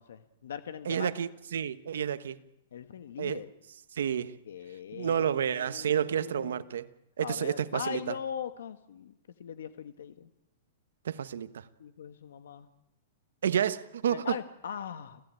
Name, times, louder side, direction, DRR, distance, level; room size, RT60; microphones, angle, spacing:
voice 1, 0.0-1.1 2.7-3.5 4.4-6.6 7.2-9.1 9.4-10.3 11.8-12.7 14.1-15.2, left 8 dB, 80° left, 1.3 m, -40 dB
voice 2, 0.8-2.4 3.2-3.4 4.0-4.3 4.9-6.9 7.2-8.1 11.0-11.6 13.4-14.4, right 8 dB, 85° right, 1.3 m, -30 dB
29.0 x 15.0 x 9.0 m
supercardioid pair, 180°, 0 cm